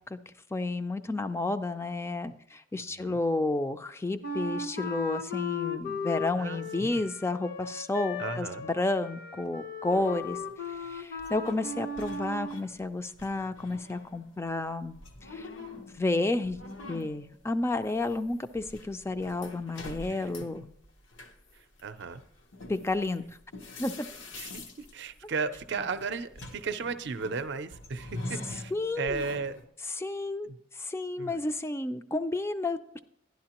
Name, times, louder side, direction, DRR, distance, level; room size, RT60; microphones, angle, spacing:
voice 1, 0.1-10.4 10.7-15.5 16.0-16.6 16.9-20.7 22.7-23.2 23.8-24.1 28.7-29.2 29.9-30.5 30.8-33.0, left 2 dB, 15° left, 10 dB, 0.4 m, -31 dB
Wind instrument woodwind instrument, 4.2-12.6, left 4 dB, 50° left, 0.7 m, -36 dB
voice 2, 6.4-7.0 8.2-8.6 20.1-20.2 21.8-22.2 24.3-29.6 30.4-30.6 31.2-31.4, right 5 dB, 60° right, 10 dB, 0.5 m, -35 dB
sound 1, 9.9-12.9 13.2-29.7, left 2 dB, 80° left, 0.9 m, -45 dB
11.5 x 11.0 x 2.9 m, 0.71 s
head